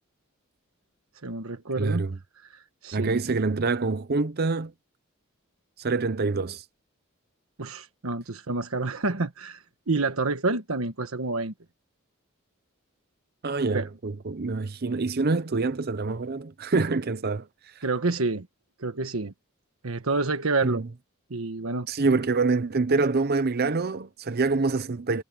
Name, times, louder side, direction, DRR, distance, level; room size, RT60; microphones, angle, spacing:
voice 1, 1.2-2.1 2.4-3.2 7.6-11.5 13.7-13.8 17.8-18.5 18.8-19.3 19.8-20.8 21.3-21.9, right 3 dB, 90° right, 1.3 m, -28 dB
voice 2, 1.8-2.2 2.9-4.7 5.8-6.6 13.4-17.5 20.6-20.8 21.9-25.2, right 3 dB, 50° right, 0.7 m, -26 dB
head